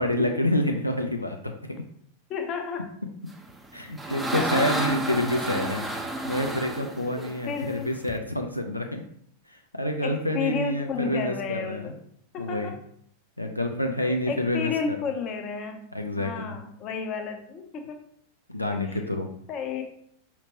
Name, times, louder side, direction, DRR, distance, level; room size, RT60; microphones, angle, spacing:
voice 1, 0.0-1.5 3.7-5.9 6.2-9.0 9.5-11.9 12.4-12.7 13.4-15.0 15.9-16.6 18.5-19.3, left 1 dB, 85° left, 3 dB, 0.4 m, -28 dB
voice 2, 2.3-2.9 4.3-4.7 7.4-7.9 10.0-12.0 12.3-12.7 14.1-15.9 16.2-18.0 18.9-19.0 19.5-19.8, left 6 dB, 35° left, 5 dB, 0.6 m, -32 dB
sound 1, 3.5-8.2, right 2 dB, 10° right, 0.5 m, -31 dB
5.0 x 2.9 x 2.7 m, 0.67 s
figure-of-eight pair, 90°, 0 cm